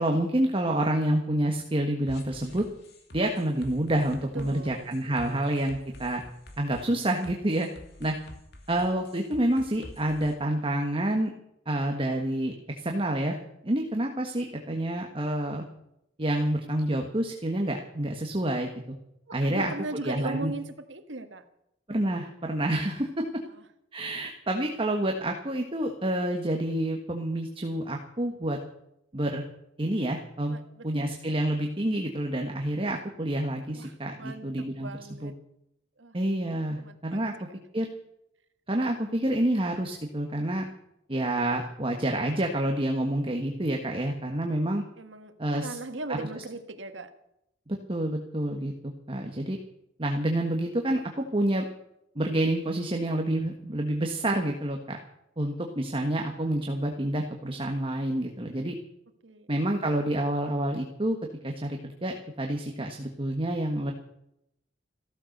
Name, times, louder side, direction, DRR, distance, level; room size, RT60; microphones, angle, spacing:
voice 1, 0.0-2.6 3.1-6.2 6.6-7.7 8.0-8.1 8.7-11.3 11.7-13.4 13.6-15.6 16.2-19.0 19.3-19.7 20.0-20.5 21.9-23.2 23.9-28.6 29.1-29.4 29.8-30.6 30.8-34.9 35.2-35.3 36.1-37.3 37.7-37.9 38.7-40.7 41.1-44.8 45.4-45.8 46.2-46.3 47.7-49.6 50.0-51.6 52.1-55.0 55.4-58.7 59.5-61.2 61.4-63.9, right 1 dB, 30° right, 3 dB, 1.5 m, -28 dB
sound 1, 2.1-10.3, left 1 dB, 65° left, 2.7 m, -47 dB
voice 2, 4.3-4.9 19.3-21.4 23.5-23.6 30.5-31.1 33.7-35.3 36.0-36.1 36.8-37.3 45.0-47.1 59.2-59.5, right 2 dB, 85° right, 8 dB, 1.6 m, -38 dB
15.0 x 13.5 x 6.6 m, 0.79 s
head